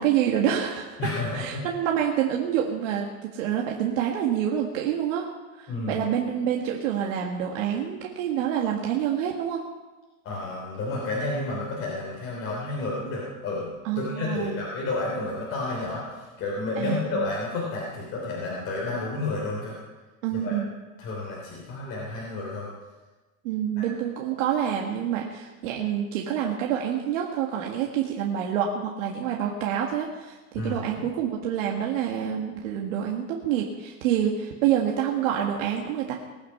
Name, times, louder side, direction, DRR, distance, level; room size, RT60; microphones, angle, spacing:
voice 1, 0.0-0.9 1.3-5.2 5.6-9.6 13.8-14.6 16.8-17.2 20.2-20.7 23.4-30.4 30.6-36.1, right 9 dB, 60° right, 0 dB, 1.8 m, -27 dB
voice 2, 1.0-1.6 5.7-6.1 10.2-19.7 20.3-20.6 21.0-22.7 23.8-23.9 30.5-31.0, left 2 dB, 30° left, -4 dB, 3.4 m, -31 dB
20.0 x 9.3 x 5.6 m, 1.2 s
supercardioid pair, 160°, 43 cm